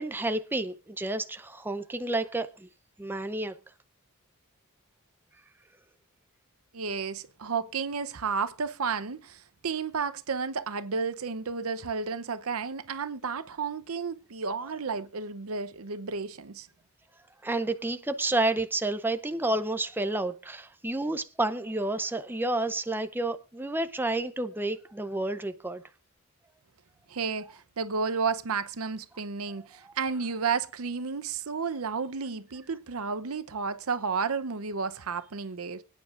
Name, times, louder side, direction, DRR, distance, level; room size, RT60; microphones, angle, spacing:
voice 1, 0.0-2.7 3.0-3.5 17.4-25.8 29.8-29.9, right 2 dB, 10° right, 0.6 m, -30 dB
voice 2, 6.7-16.7 27.1-35.8, right 5 dB, 70° right, 0.7 m, -32 dB
25.5 x 9.3 x 2.5 m
head